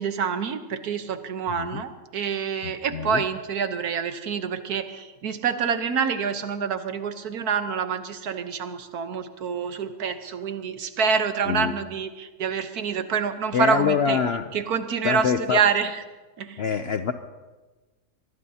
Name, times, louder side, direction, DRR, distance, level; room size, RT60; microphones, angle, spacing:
voice 1, 0.0-14.2 14.5-16.0 16.4-16.6, right 6 dB, 75° right, 9 dB, 1.5 m, -27 dB
voice 2, 1.5-1.8 2.6-3.2 11.5-11.7 13.5-14.5 15.0-15.6 16.6-17.1, left 6 dB, 60° left, 9 dB, 0.7 m, -25 dB
24.5 x 20.5 x 2.8 m, 1.3 s
omnidirectional pair, 1.6 m